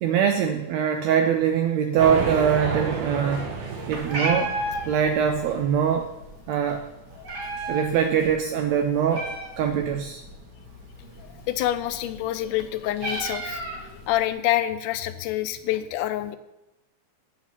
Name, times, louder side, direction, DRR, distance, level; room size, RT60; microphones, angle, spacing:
voice 1, 0.0-3.5 3.9-4.5 4.9-6.1 6.5-6.8 7.7-9.3 9.6-10.2, right 8 dB, 80° right, 5 dB, 1.6 m, -23 dB
sound 1, 2.0-5.8, right 4 dB, 60° right, 2.0 m, -32 dB
Meow, 3.9-14.3, right 1 dB, 45° right, 1.5 m, -35 dB
voice 2, 11.2-16.4, left 13 dB, 85° left, 11 dB, 2.1 m, -27 dB
8.6 x 4.1 x 7.2 m, 0.94 s
omnidirectional pair, 3.6 m